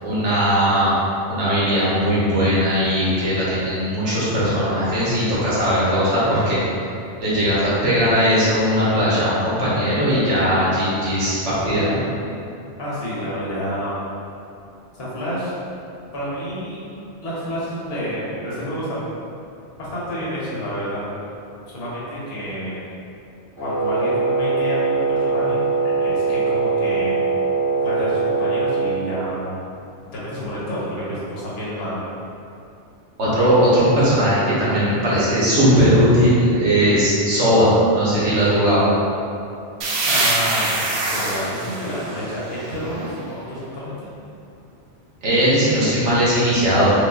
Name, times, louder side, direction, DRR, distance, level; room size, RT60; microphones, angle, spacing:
voice 1, 0.0-0.9 1.3-6.6 7.2-12.0 33.2-38.8 45.2-46.9, equal, 80° right, -9 dB, 1.3 m, -18 dB
voice 2, 12.8-13.9 15.0-15.5 16.1-16.9 17.2-19.2 19.8-21.3 21.7-22.8 23.6-25.6 26.0-27.2 27.8-29.6 30.1-32.0 40.0-44.1, equal, 60° left, -8 dB, 1.2 m, -29 dB
Wind instrument woodwind instrument, 23.6-28.9, right 4 dB, 25° right, 1.3 m, -21 dB
sound 1, 39.8-43.4, right 2 dB, 65° right, 0.7 m, -24 dB
4.9 x 2.3 x 2.3 m, 2.6 s
omnidirectional pair, 1.2 m